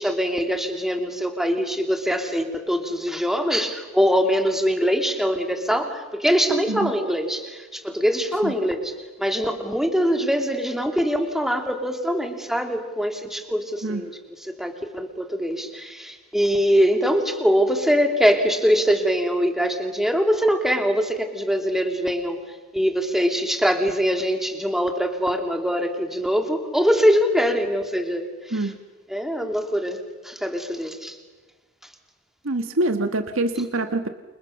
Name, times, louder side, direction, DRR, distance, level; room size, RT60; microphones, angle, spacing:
voice 1, 0.0-8.9 9.2-22.4 22.7-28.7 29.1-31.2, equal, ahead, 4 dB, 3.1 m, -23 dB
voice 2, 32.4-34.1, right 2 dB, 75° right, 7 dB, 1.6 m, -25 dB
29.5 x 27.0 x 6.7 m, 1.3 s
head